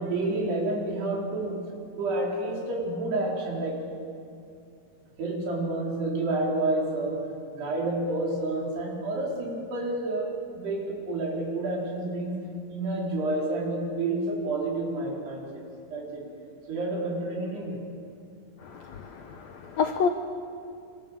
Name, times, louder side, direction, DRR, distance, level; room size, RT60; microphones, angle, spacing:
voice 1, 0.0-1.6 1.9-3.8 5.2-12.4 12.7-15.6 15.9-16.3 16.7-17.8, right 2 dB, 80° right, -2 dB, 6.6 m, -29 dB
voice 2, 18.6-20.1, left 6 dB, 90° left, 6 dB, 1.5 m, -29 dB
26.5 x 25.0 x 7.3 m, 2.5 s
omnidirectional pair, 4.7 m